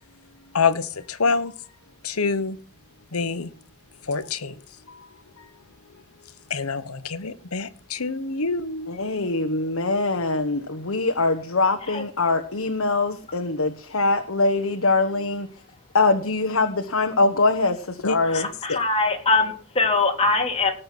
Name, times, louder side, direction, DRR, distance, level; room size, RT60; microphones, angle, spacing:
voice 1, 0.5-1.5 2.0-2.6 3.1-3.5 4.1-4.6 4.9-5.1 6.5-8.9 18.0-18.4 18.7-18.8, left 4 dB, 85° left, 13 dB, 1.2 m, -26 dB
voice 2, 8.9-15.5 15.9-17.8 18.0-18.5, left 3 dB, 70° left, 5 dB, 1.2 m, -23 dB
voice 3, 18.3-20.7, left 3 dB, 30° left, 1 dB, 3.4 m, -22 dB
18.0 x 6.7 x 6.1 m, 0.43 s
head